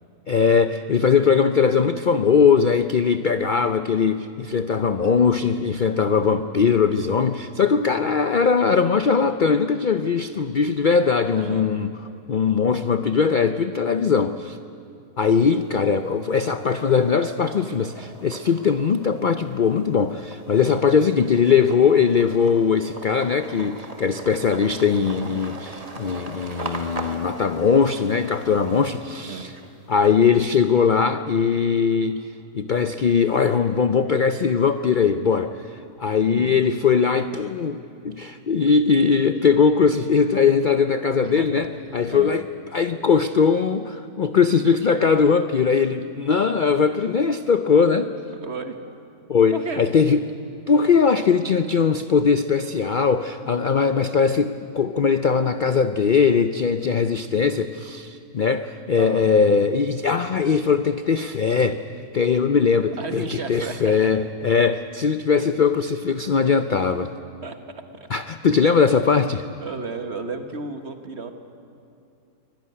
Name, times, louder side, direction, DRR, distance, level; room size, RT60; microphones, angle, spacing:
voice 1, 0.3-11.9 12.3-14.6 15.2-29.5 29.9-32.3 32.5-42.4 42.7-48.1 49.3-50.3 50.7-61.8 62.1-67.1 68.1-69.5, left 6 dB, 55° left, 10 dB, 0.5 m, -20 dB
voice 2, 11.3-11.7 20.6-20.8 29.3-29.5 36.3-36.5 41.2-41.5 42.1-42.3 48.4-48.8 49.5-49.8 59.0-59.5 63.0-64.1 67.4-67.6 67.9-68.1 69.6-71.3, right 3 dB, 45° right, 7 dB, 1.7 m, -33 dB
sound 1, 15.4-16.0 16.4-29.9, right 2 dB, 25° right, 1.8 m, -40 dB
24.5 x 17.0 x 9.9 m, 2.6 s
omnidirectional pair, 1.7 m